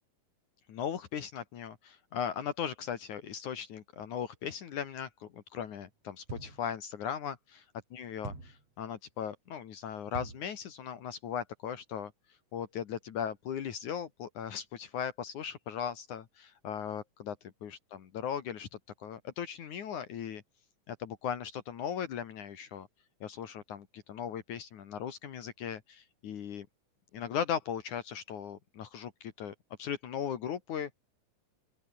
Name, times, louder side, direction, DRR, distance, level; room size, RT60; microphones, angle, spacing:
voice 1, 0.7-7.6 7.9-12.1 12.5-17.4 17.6-20.4 20.9-22.9 23.2-26.7 27.1-29.5 29.8-30.9, left 8 dB, 70° left, 3.2 m, -38 dB
sound 1, 6.3-6.7 8.2-8.7 10.1-10.5, right 3 dB, 50° right, 8.3 m, -43 dB
open air
omnidirectional pair, 3.7 m